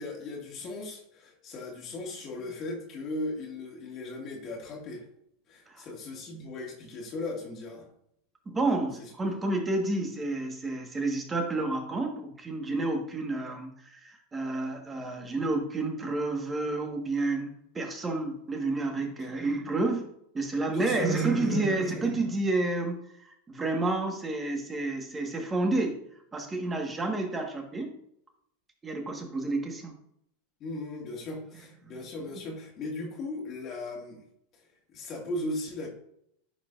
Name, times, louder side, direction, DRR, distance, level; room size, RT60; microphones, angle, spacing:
voice 1, 0.0-5.0 5.5-7.9 9.0-9.4 19.2-19.3 20.7-21.9 30.6-34.2 34.9-35.9, left 2 dB, 40° left, -1 dB, 2.1 m, -37 dB
voice 2, 8.4-20.1 20.3-23.0 23.5-26.0 26.3-28.0 28.8-29.9, right 2 dB, 20° right, 3 dB, 1.6 m, -30 dB
10.0 x 4.7 x 2.6 m, 0.71 s
hypercardioid pair, 95°, 0 cm